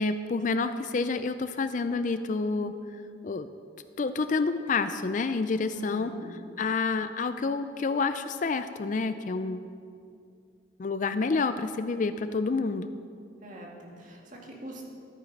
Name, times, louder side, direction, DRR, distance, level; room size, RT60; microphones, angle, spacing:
voice 1, 0.0-3.5 4.0-6.1 6.6-9.7 10.8-12.9, left 4 dB, 40° left, 11 dB, 0.4 m, -29 dB
voice 2, 5.7-6.3 13.4-14.8, right 1 dB, 40° right, -1 dB, 2.0 m, -43 dB
13.5 x 8.9 x 5.2 m, 2.4 s
head